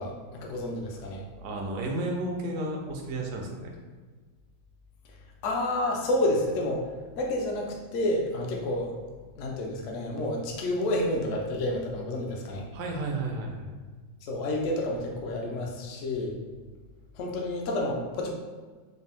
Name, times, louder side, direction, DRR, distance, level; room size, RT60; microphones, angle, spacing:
voice 1, 0.0-1.2 5.4-6.8 7.2-8.9 9.3-12.6 14.2-16.3 17.2-18.3, left 1 dB, 80° left, 0 dB, 0.6 m, -29 dB
voice 2, 1.4-3.7 12.7-13.7, right 2 dB, 80° right, 1 dB, 0.6 m, -32 dB
4.1 x 2.6 x 3.4 m, 1.4 s
omnidirectional pair, 2.2 m